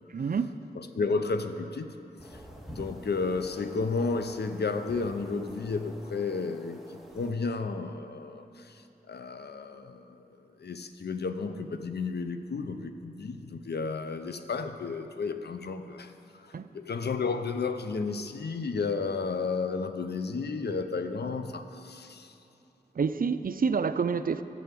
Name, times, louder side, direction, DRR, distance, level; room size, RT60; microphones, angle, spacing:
voice 1, 0.1-0.6 16.5-16.7 22.9-24.4, right 5 dB, 55° right, 0.5 m, -28 dB
voice 2, 0.8-1.9 2.3-2.4 2.7-10.3 10.6-22.4, left 4 dB, 75° left, 0.7 m, -32 dB
sound 1, 2.2-7.3, equal, ahead, 1.7 m, -48 dB
11.5 x 6.9 x 8.4 m
cardioid pair, 45°, 17 cm